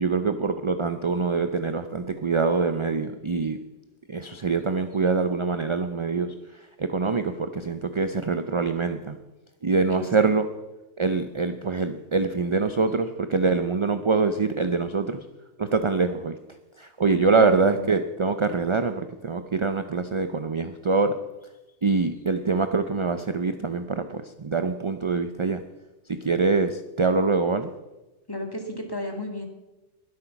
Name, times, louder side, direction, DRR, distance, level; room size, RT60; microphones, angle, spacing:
voice 1, 0.0-3.6 4.1-9.2 9.6-10.5 11.0-15.2 15.6-16.4 16.8-21.2 21.8-25.6 26.1-27.7, right 4 dB, 35° right, 9 dB, 0.5 m, -24 dB
voice 2, 9.9-10.3 17.3-17.9 28.3-29.5, left 1 dB, 20° left, 3 dB, 2.2 m, -33 dB
21.0 x 8.1 x 5.9 m, 1.1 s
omnidirectional pair, 1.3 m